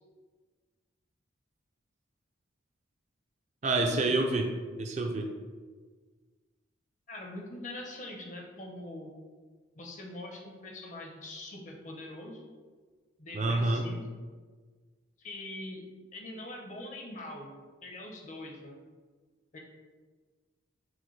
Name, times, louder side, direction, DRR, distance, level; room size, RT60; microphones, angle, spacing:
voice 1, 3.6-4.5 4.8-5.3 13.3-13.9, right 2 dB, 35° right, 3 dB, 0.3 m, -27 dB
voice 2, 7.1-9.1 9.7-12.4 13.2-14.0 15.2-15.8 16.1-17.5 17.8-18.8 19.5-19.6, left 1 dB, 40° left, 1 dB, 0.6 m, -43 dB
5.9 x 2.1 x 3.1 m, 1.4 s
head